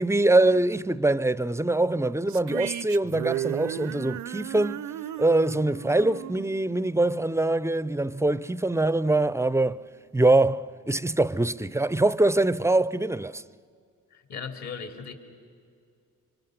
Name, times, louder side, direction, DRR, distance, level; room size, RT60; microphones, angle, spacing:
voice 1, 0.0-4.8 5.2-9.8 10.1-13.4, right 2 dB, 10° right, 0.5 m, -23 dB
sound 1, 2.3-7.6, right 13 dB, 70° right, 0.7 m, -35 dB
voice 2, 14.1-15.1, left 6 dB, 65° left, 3.5 m, -37 dB
28.5 x 25.5 x 6.7 m
cardioid pair, 90°, 30 cm